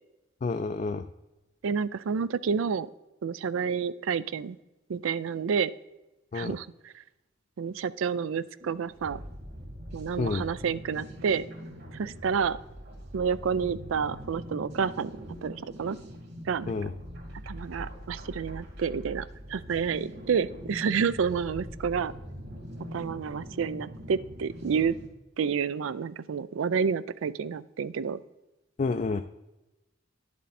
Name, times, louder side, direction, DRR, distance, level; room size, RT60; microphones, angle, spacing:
voice 1, 0.4-1.0 6.3-6.5 10.2-10.4 16.7-16.9 28.8-29.2, left 4 dB, 40° left, 8 dB, 0.3 m, -29 dB
voice 2, 1.6-2.9 3.2-4.6 4.9-5.7 6.3-6.7 7.6-9.2 9.9-11.4 11.9-12.6 13.1-15.1 15.4-16.0 16.5-16.8 17.5-22.1 22.9-24.9 25.4-28.2, right 6 dB, 90° right, 17 dB, 0.4 m, -29 dB
sound 1, 8.6-25.1, equal, 55° right, 2.5 m, -43 dB
10.5 x 7.3 x 4.2 m, 1.0 s
head